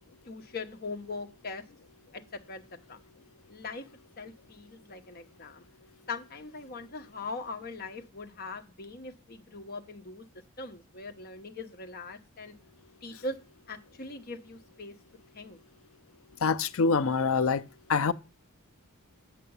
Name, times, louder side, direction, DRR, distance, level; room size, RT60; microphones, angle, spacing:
voice 1, 0.3-1.6 2.1-2.6 2.9-3.0 3.5-3.8 4.2-5.6 6.1-10.2 10.6-12.5 13.0-13.4 13.7-14.9 15.3-15.6, left 3 dB, 40° left, 0.9 m, -41 dB
voice 2, 16.4-17.6 17.9-18.1, left 4 dB, 65° left, 0.5 m, -25 dB
8.3 x 6.8 x 5.5 m
head